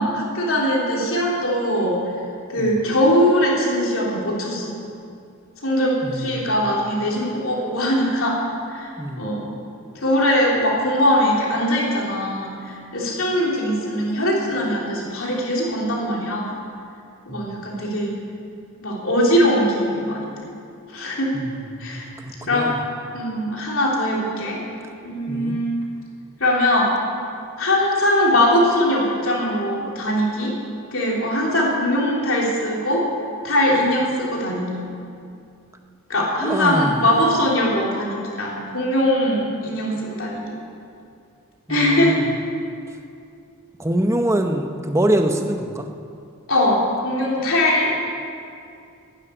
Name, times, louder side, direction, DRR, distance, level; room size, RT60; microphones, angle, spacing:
voice 1, 0.0-2.0 2.5-4.7 5.6-8.4 8.7-9.5 10.0-16.5 17.3-18.1 18.8-20.3 20.9-21.4 21.8-22.1 22.5-22.7 23.1-24.6 25.0-25.7 26.4-26.9 27.6-30.6 30.9-33.1 33.4-34.8 36.1-40.6 41.7-42.2 46.5-47.9, left 1 dB, 65° left, -3 dB, 3.4 m, -21 dB
voice 2, 6.0-6.5 9.0-9.2 17.3-17.5 21.3-22.8 25.3-25.6 36.4-37.1 41.7-42.3 43.8-45.9, right 1 dB, 15° right, 5 dB, 0.8 m, -24 dB
11.5 x 10.5 x 9.9 m, 2.5 s
head